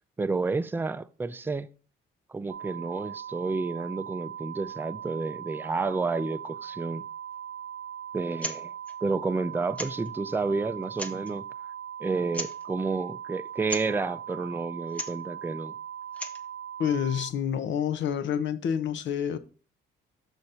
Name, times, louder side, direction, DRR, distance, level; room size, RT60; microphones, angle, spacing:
voice 1, 0.2-1.7 2.3-7.0 8.1-8.7 9.0-11.5 12.0-15.8, right 4 dB, 10° right, 0.4 m, -30 dB
sound 1, 2.5-17.3, right 9 dB, 65° right, 0.5 m, -40 dB
sound 2, 8.3-8.6 8.8-8.9 9.7-10.1 10.8-11.3 12.3-12.6 13.6-13.9 14.9-15.2 16.0-16.5, left 1 dB, 5° left, 1.0 m, -36 dB
voice 2, 16.8-19.4, left 8 dB, 70° left, 0.8 m, -28 dB
6.4 x 4.0 x 5.5 m
cardioid pair, 90°, 20 cm